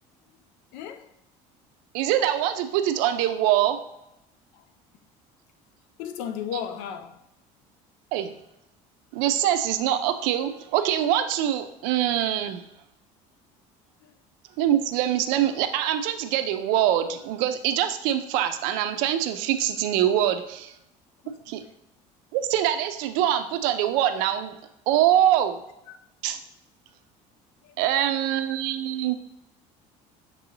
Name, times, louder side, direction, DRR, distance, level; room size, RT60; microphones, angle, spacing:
voice 1, 0.7-1.1 6.0-7.2 25.9-26.0 27.8-27.9, left 8 dB, 85° left, 0.5 m, -34 dB
voice 2, 1.9-3.8 8.1-8.3 9.1-12.6 14.6-20.7 21.5-21.6 22.3-24.5 24.9-25.6 26.2-26.4 27.8-29.2, right 11 dB, 80° right, 0.5 m, -24 dB
6.0 x 2.8 x 2.8 m
cardioid pair, 160°, 14 cm